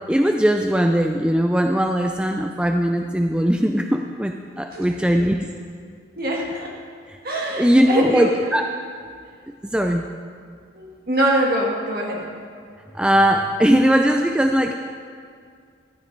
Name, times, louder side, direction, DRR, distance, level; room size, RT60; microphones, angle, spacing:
voice 1, 0.1-5.5 7.1-7.2 7.6-8.7 9.6-10.1 12.9-14.7, equal, 5° right, 4 dB, 0.3 m, -19 dB
voice 2, 6.2-6.7 7.2-8.3 10.7-12.2, right 1 dB, 50° right, -1 dB, 1.7 m, -23 dB
14.5 x 14.0 x 3.3 m, 2.2 s
head